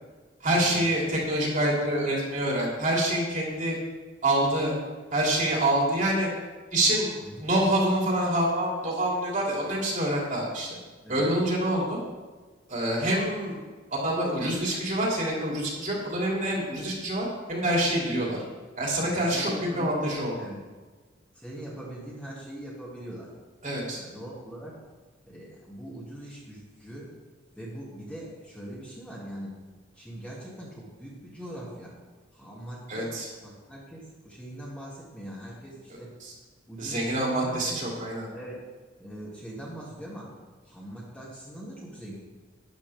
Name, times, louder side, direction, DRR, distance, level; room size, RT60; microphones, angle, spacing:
voice 1, 0.4-3.8 4.2-4.7 5.1-6.3 6.7-10.8 11.1-12.0 12.7-13.6 13.9-18.4 18.8-20.3 23.6-24.0 32.9-33.3 36.2-36.3 36.8-38.3, right 1 dB, 40° right, -3 dB, 3.1 m, -26 dB
voice 2, 7.2-7.5 11.0-11.3 19.1-20.6 21.3-23.3 24.0-24.7 25.2-27.1 27.5-29.6 29.9-31.9 32.3-36.1 36.7-37.8 38.3-38.6 39.0-40.3 40.6-42.1, right 1 dB, 5° left, -6 dB, 2.5 m, -41 dB
12.5 x 10.5 x 3.6 m, 1.3 s
head